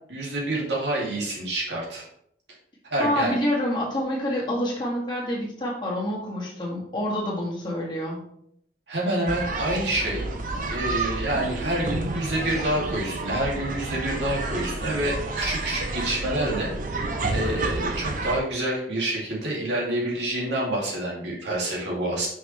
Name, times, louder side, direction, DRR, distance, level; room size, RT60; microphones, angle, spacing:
voice 1, 0.1-2.0 2.9-3.3 8.9-10.3 10.7-22.3, right 1 dB, 85° right, -4 dB, 2.3 m, -27 dB
voice 2, 3.0-8.2, left 1 dB, 25° left, -4 dB, 1.8 m, -27 dB
sound 1, 9.3-18.4, right 2 dB, 50° right, 0.7 m, -30 dB
5.8 x 5.8 x 3.2 m, 0.71 s
head